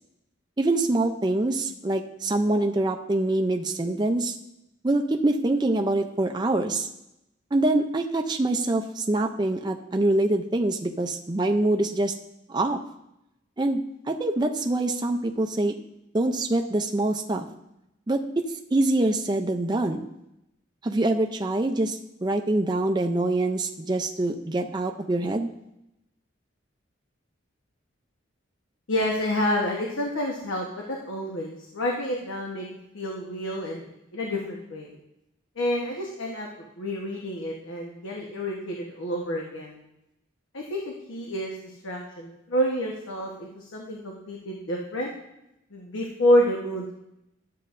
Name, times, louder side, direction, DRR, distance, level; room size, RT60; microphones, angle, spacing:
voice 1, 0.6-4.3 4.8-6.9 7.5-12.1 12.5-12.8 13.6-13.8 14.1-15.7 16.1-17.4 18.1-18.4 18.7-20.0 20.8-25.5, right 2 dB, 20° right, 4 dB, 0.4 m, -25 dB
voice 2, 28.9-32.7 32.9-34.9 35.6-36.5 36.8-39.8 40.5-45.1 45.7-46.9, equal, 80° left, -1 dB, 1.1 m, -28 dB
12.0 x 7.6 x 2.5 m, 0.86 s
head